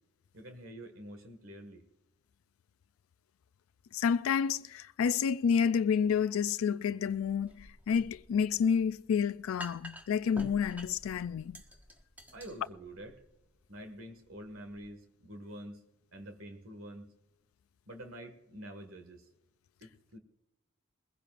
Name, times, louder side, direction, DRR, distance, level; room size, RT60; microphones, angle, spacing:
voice 1, 0.3-1.8 12.3-13.2 13.7-15.8 16.1-17.1 17.9-19.3 19.8-20.2, right 1 dB, 90° right, 1.8 m, -47 dB
voice 2, 3.9-11.6, left 7 dB, 85° left, 0.3 m, -29 dB
sound 1, 7.1-14.9, equal, 10° right, 1.3 m, -50 dB
22.5 x 16.0 x 2.5 m
head